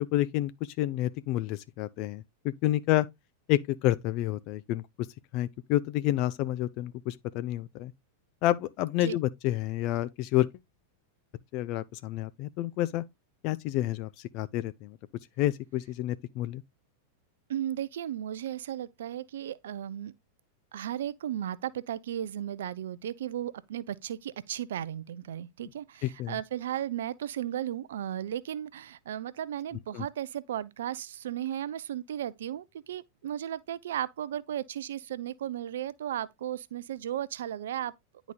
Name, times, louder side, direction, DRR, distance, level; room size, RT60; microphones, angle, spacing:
voice 1, 0.0-3.1 3.5-5.1 5.3-7.9 8.4-10.5 11.5-13.0 13.4-15.0 15.4-16.6 26.0-26.4 29.9-30.1, left 14 dB, 40° left, 0.4 m, -29 dB
voice 2, 17.5-20.1 20.7-37.9, right 11 dB, 60° right, 0.4 m, -35 dB
10.5 x 4.0 x 2.3 m
figure-of-eight pair, 90°, 0 cm